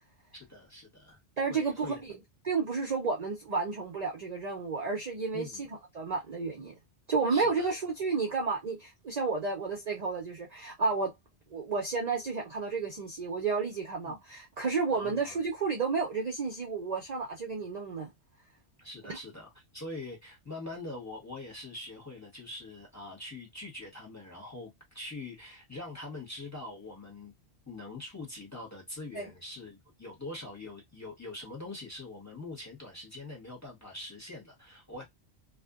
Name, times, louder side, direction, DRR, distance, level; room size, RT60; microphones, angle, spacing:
voice 1, 0.3-1.2 1.5-2.0 5.3-5.6 7.3-7.7 14.0-14.2 14.9-15.3 18.8-27.3 27.6-35.0, left 2 dB, 15° left, 1.1 m, -43 dB
voice 2, 1.4-2.2 2.4-6.7 7.1-11.1 11.5-18.1 19.1-19.2 29.1-29.3, right 4 dB, 50° right, 0.6 m, -31 dB
2.5 x 2.5 x 2.3 m
omnidirectional pair, 1.1 m